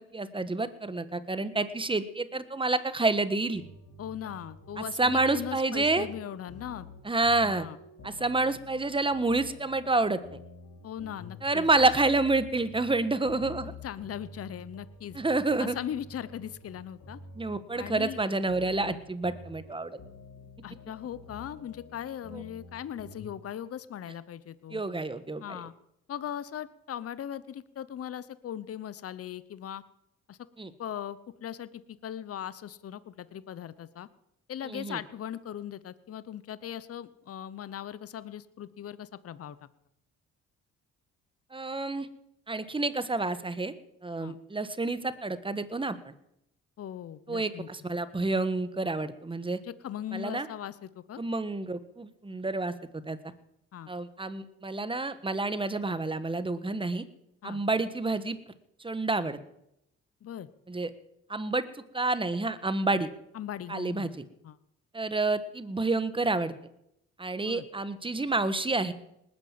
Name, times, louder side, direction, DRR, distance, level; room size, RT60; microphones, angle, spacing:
voice 1, 0.0-3.6 4.8-6.1 7.0-7.7 8.0-10.4 11.4-13.7 15.1-15.7 17.3-19.9 22.3-22.4 24.7-25.6 30.6-30.7 34.6-35.0 41.5-42.1 42.5-43.7 44.0-46.1 47.3-49.6 50.1-50.5 51.2-53.2 53.9-57.0 57.4-58.4 58.8-59.4 60.7-60.9 61.3-63.1 63.7-64.2 64.9-66.5 67.2-68.9, right 3 dB, 15° right, 13 dB, 1.4 m, -29 dB
sound 1, 3.5-23.3, left 2 dB, 70° left, 3.2 m, -49 dB
voice 2, 4.0-6.9 7.4-7.8 10.8-11.7 13.8-15.2 15.6-17.2 17.8-18.2 20.6-24.8 25.4-25.7 26.1-29.8 30.3-30.4 30.8-34.1 34.5-39.6 44.2-44.4 46.8-47.7 49.6-51.2 53.7-53.9 57.4-57.6 60.2-60.5 63.3-64.1 64.4-64.6 67.4-67.6, left 10 dB, 50° left, 16 dB, 0.9 m, -39 dB
19.5 x 9.7 x 7.6 m, 0.79 s
cardioid pair, 90°, 30 cm